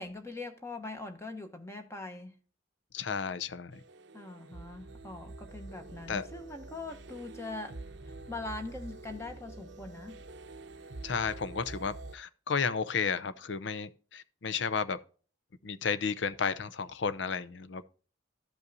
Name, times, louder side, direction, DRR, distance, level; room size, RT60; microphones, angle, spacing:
voice 1, 0.0-2.3 4.1-7.8 8.1-10.2, left 2 dB, 15° left, 1.0 m, -42 dB
voice 2, 2.9-3.8 6.1-6.2 11.0-15.0 15.6-17.8, left 5 dB, 75° left, 0.6 m, -33 dB
sound 1, 3.7-12.2, right 2 dB, 75° right, 0.6 m, -47 dB
13.5 x 5.4 x 2.7 m
head